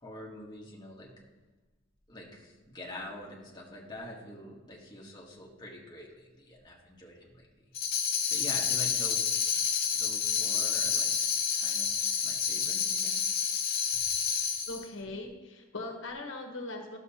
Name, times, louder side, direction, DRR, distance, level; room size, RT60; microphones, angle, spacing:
voice 1, 0.0-1.1 2.1-7.5 8.3-9.5 9.9-11.1 11.5-11.9 12.2-13.2 13.9-14.0, left 1 dB, 20° left, -3 dB, 1.2 m, -45 dB
Tambourine, 7.7-14.8, left 7 dB, 50° left, 0.7 m, -29 dB
voice 2, 14.7-17.0, left 2 dB, 75° left, 3 dB, 1.0 m, -40 dB
12.0 x 6.6 x 2.8 m, 1.2 s
head